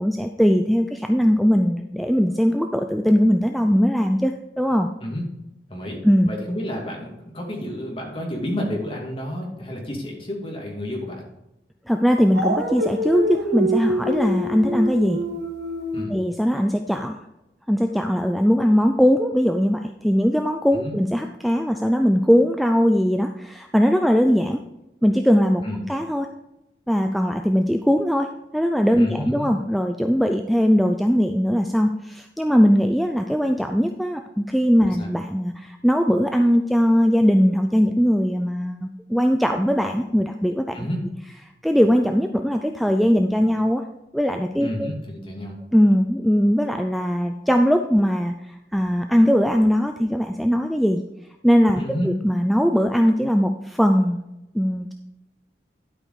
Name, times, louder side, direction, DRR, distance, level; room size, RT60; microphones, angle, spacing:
voice 1, 0.0-4.9 6.0-6.3 11.9-15.2 16.1-17.2 17.7-24.6 25.0-25.6 25.9-26.3 26.9-40.9 41.6-43.8 44.1-44.9 45.7-51.0 51.4-54.2 54.5-54.9, equal, ahead, 5 dB, 0.4 m, -20 dB
voice 2, 5.7-11.2 15.9-16.1 20.7-21.0 25.6-25.8 29.0-29.5 35.0-35.1 40.7-41.1 44.6-45.6 51.8-52.1, equal, 30° left, -2 dB, 2.6 m, -30 dB
Dog, 12.3-16.1, equal, 75° right, 1.4 m, -26 dB
12.0 x 5.3 x 5.0 m, 0.91 s
head